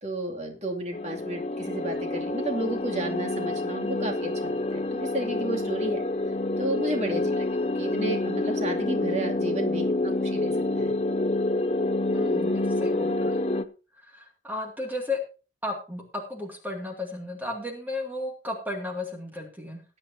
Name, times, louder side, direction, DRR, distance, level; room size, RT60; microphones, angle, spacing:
voice 1, 0.0-6.0 6.6-10.9, right 1 dB, 35° right, 2 dB, 2.6 m, -32 dB
sound 1, 0.9-13.6, left 2 dB, 35° left, 0.6 m, -27 dB
voice 2, 7.1-7.4 12.1-13.4 13.9-15.2 15.6-19.8, left 2 dB, 10° right, 2 dB, 2.3 m, -34 dB
20.5 x 8.5 x 2.8 m, 0.34 s
head